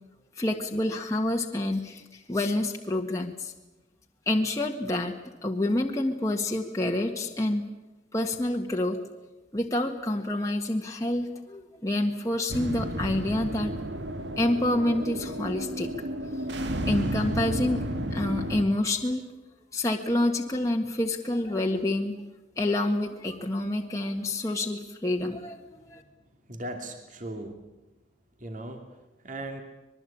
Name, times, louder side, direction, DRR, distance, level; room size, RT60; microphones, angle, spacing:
voice 1, 0.4-3.5 4.3-5.1 5.4-7.6 8.1-9.0 9.5-13.7 14.4-15.9 16.9-17.8 18.1-19.2 19.7-22.1 22.6-26.0, left 1 dB, 15° left, 0 dB, 1.7 m, -28 dB
sound 1, 12.5-18.6, right 1 dB, 65° right, 1.8 m, -32 dB
voice 2, 26.4-27.7 28.4-29.6, right 1 dB, 40° right, 4 dB, 2.7 m, -39 dB
25.5 x 21.5 x 8.7 m, 1.0 s
head